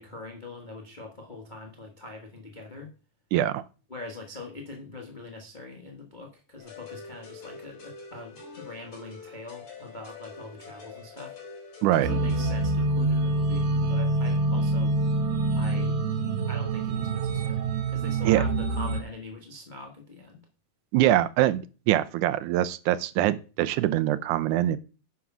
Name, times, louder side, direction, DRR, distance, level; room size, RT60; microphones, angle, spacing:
voice 1, 0.0-2.9 3.9-11.3 12.0-14.9 15.5-16.0 16.5-20.4, left 2 dB, 80° left, 0.4 m, -43 dB
voice 2, 3.3-3.6 11.8-12.1 18.3-18.4 20.9-24.8, right 13 dB, 80° right, 2.0 m, -23 dB
sound 1, 6.6-12.8, left 5 dB, 40° left, 4.2 m, -45 dB
sound 2, 12.0-19.0, right 2 dB, 60° right, 2.4 m, -26 dB
10.0 x 4.8 x 6.0 m
omnidirectional pair, 3.7 m